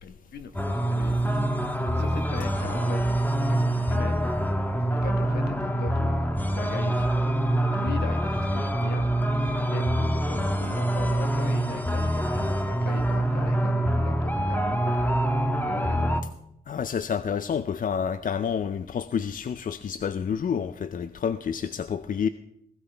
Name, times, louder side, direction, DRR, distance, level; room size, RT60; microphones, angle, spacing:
voice 1, 0.0-1.4 1.9-3.2 3.5-4.3 4.9-7.1 7.7-9.0 9.7-15.2 15.6-16.1, left 5 dB, 70° left, 1.4 m, -40 dB
sound 1, 0.5-16.2, right 1 dB, 10° left, 1.4 m, -25 dB
voice 2, 16.7-22.3, left 7 dB, 55° left, 0.6 m, -29 dB
17.0 x 13.0 x 3.5 m
supercardioid pair, 50°, 17 cm